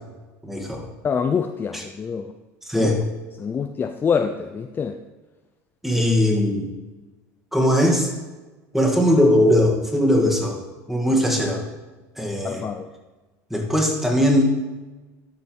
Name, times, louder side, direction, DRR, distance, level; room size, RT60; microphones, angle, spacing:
voice 1, 0.4-0.8 1.7-1.8 2.7-3.0 5.8-6.7 7.5-8.1 8.7-10.6 10.9-11.6 12.2-12.6 13.5-14.5, left 1 dB, 5° right, 0 dB, 2.0 m, -19 dB
voice 2, 1.0-2.3 2.7-2.9 3.4-5.0 6.0-6.1 12.4-12.9, left 6 dB, 25° left, 7 dB, 0.5 m, -25 dB
12.5 x 5.6 x 4.6 m, 1.2 s
supercardioid pair, 120°, 8 cm